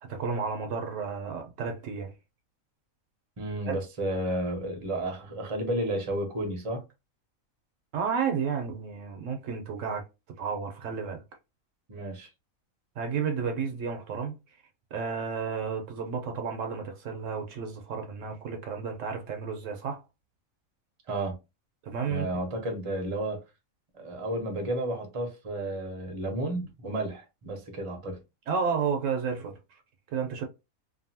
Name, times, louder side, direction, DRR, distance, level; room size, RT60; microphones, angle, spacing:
voice 1, 0.0-2.1 3.7-3.8 7.9-10.0 10.4-11.2 13.0-14.3 14.9-20.0 21.8-22.3 28.5-29.6 30.1-30.5, right 6 dB, 70° right, 0.9 m, -32 dB
voice 2, 3.4-6.8 11.9-12.3 21.1-21.4 22.1-23.4 23.9-28.2, right 1 dB, 30° right, 0.6 m, -32 dB
2.6 x 2.6 x 2.7 m
omnidirectional pair, 1.4 m